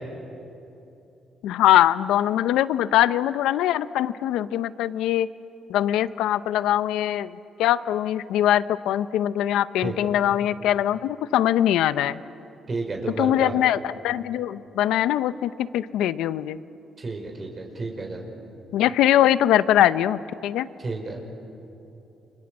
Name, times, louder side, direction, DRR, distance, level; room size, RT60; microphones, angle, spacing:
voice 1, 1.4-5.3 5.7-12.2 13.2-16.6 18.7-20.7, left 12 dB, 90° left, 15 dB, 0.7 m, -22 dB
voice 2, 12.7-13.5 17.0-18.2 20.8-21.2, right 3 dB, 35° right, 1 dB, 4.8 m, -31 dB
30.0 x 25.0 x 7.6 m, 2.9 s
cardioid pair, 90°, 0 cm